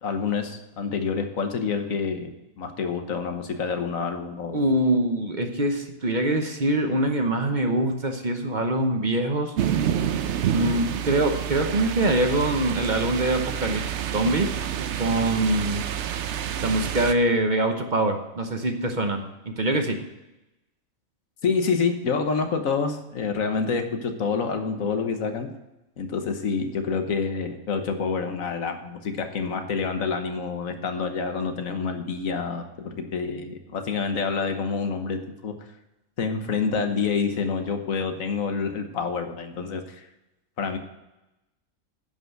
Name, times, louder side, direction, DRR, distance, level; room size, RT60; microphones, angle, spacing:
voice 1, 0.0-2.3 2.6-4.6 21.4-25.5 26.0-35.5 36.2-40.0 40.6-40.8, left 5 dB, 85° left, 7 dB, 1.5 m, -27 dB
voice 2, 4.5-9.5 10.5-13.8 14.1-14.5 14.8-15.8 16.6-19.2 19.6-20.0, right 1 dB, 40° right, 5 dB, 1.0 m, -24 dB
sound 1, 9.6-17.1, right 9 dB, 65° right, 0.9 m, -28 dB
10.5 x 5.6 x 7.7 m, 0.96 s
omnidirectional pair, 1.4 m